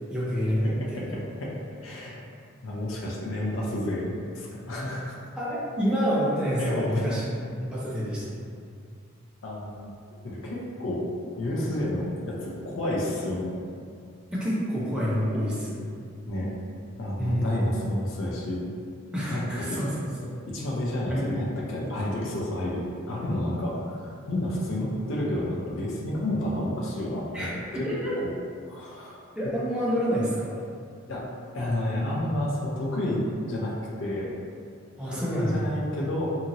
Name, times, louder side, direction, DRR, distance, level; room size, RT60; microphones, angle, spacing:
voice 1, 0.1-1.2 5.4-7.3 7.6-8.4 14.3-15.9 17.2-17.9 19.1-19.9 20.2-20.3 21.1-21.4 27.3-28.1 29.4-30.6 35.0-35.6, equal, 5° right, -8 dB, 0.4 m, -28 dB
voice 2, 0.6-1.5 1.8-2.2 2.6-5.2 6.6-7.2 9.4-9.9 10.2-11.0 11.3-13.6 16.3-16.5 17.0-18.6 19.3-19.8 20.5-27.9 28.2-28.3 28.6-29.2 31.1-31.2 31.5-33.2 33.5-34.3 35.1-36.4, left 1 dB, 70° left, -4 dB, 0.5 m, -30 dB
2.8 x 2.7 x 2.5 m, 2.3 s
head